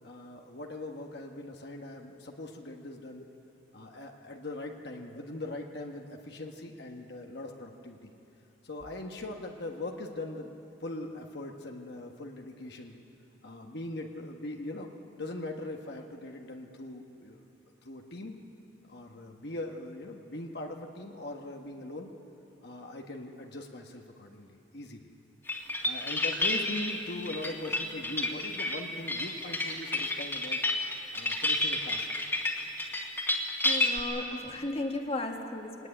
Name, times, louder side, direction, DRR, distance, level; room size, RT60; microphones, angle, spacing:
voice 1, 0.0-3.2 3.7-8.1 8.6-10.5 10.8-13.0 13.4-17.4 17.8-18.3 18.9-22.1 22.6-25.0 25.8-30.6 31.1-32.1, left 2 dB, 60° left, 2 dB, 1.4 m, -41 dB
sound 1, 25.5-34.0, left 2 dB, 10° left, 2.1 m, -30 dB
voice 2, 33.6-35.9, left 2 dB, 30° left, 3 dB, 1.7 m, -35 dB
23.0 x 18.5 x 9.9 m, 2.9 s
head